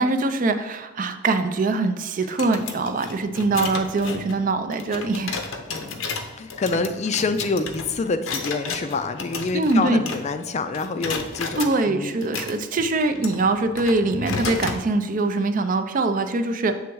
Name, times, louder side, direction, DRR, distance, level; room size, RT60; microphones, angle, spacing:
voice 1, 0.0-5.4 9.5-10.0 11.6-16.8, right 3 dB, 45° right, 9 dB, 0.4 m, -23 dB
sound 1, 2.2-10.5 10.7-11.7 12.2-14.8, left 4 dB, 80° left, 0.7 m, -33 dB
voice 2, 5.7-6.0 6.4-12.2, left 3 dB, 35° left, 10 dB, 0.4 m, -27 dB
7.2 x 3.5 x 4.6 m, 1.2 s
head